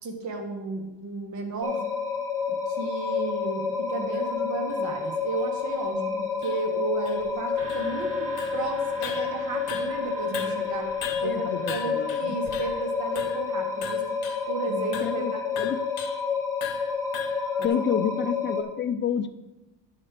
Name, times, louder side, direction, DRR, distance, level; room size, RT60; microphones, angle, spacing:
voice 1, 0.0-1.8 2.5-10.9 11.2-14.0 14.5-15.4 17.6-17.7, right 3 dB, 40° right, 3 dB, 1.6 m, -33 dB
sound 1, 1.6-18.6, left 5 dB, 5° left, 1.7 m, -29 dB
sound 2, 4.1-4.2 4.7-4.8 5.4-5.5 5.7-5.8 6.4-6.6 7.0-8.1 8.4-8.7 9.0-10.1 10.3-12.8 13.1-13.5 13.8-14.5 14.9-15.2 15.6-16.2 16.6-17.7, left 9 dB, 55° left, 0.9 m, -39 dB
sound 3, 7.6-15.4, right 2 dB, 70° right, 2.8 m, -47 dB
voice 2, 11.2-12.4 14.7-15.8 17.6-19.3, left 8 dB, 25° left, 10 dB, 0.5 m, -29 dB
10.5 x 4.4 x 6.7 m, 1.0 s
cardioid pair, 120°, 44 cm